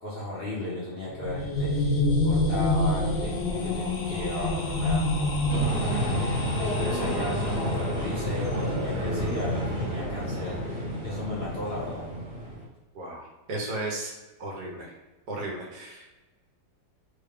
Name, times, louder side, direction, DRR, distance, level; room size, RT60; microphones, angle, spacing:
voice 1, 0.0-5.5 5.7-6.4 6.8-10.6 11.0-12.1, left 2 dB, 40° left, -8 dB, 1.0 m, -35 dB
sound 1, 1.1-8.1, left 1 dB, 85° left, 0.5 m, -27 dB
sound 2, 5.5-12.6, equal, 25° right, 0.8 m, -30 dB
voice 2, 12.9-14.1 14.4-14.9 15.3-16.1, right 2 dB, 70° right, -2 dB, 1.4 m, -35 dB
3.8 x 2.3 x 3.5 m, 1.1 s
omnidirectional pair, 1.8 m